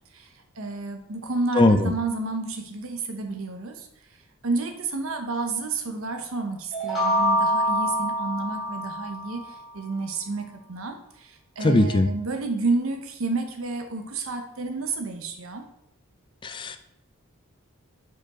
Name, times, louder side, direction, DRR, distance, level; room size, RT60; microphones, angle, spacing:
voice 1, 0.6-3.9 4.4-9.4 9.7-11.3 11.6-15.6, right 3 dB, 75° right, 5 dB, 0.9 m, -30 dB
voice 2, 1.5-1.9 11.6-12.1 16.4-16.9, left 2 dB, 20° left, 8 dB, 0.4 m, -20 dB
sound 1, 6.7-9.5, equal, ahead, 1.9 m, -25 dB
5.2 x 4.7 x 4.2 m, 0.75 s
head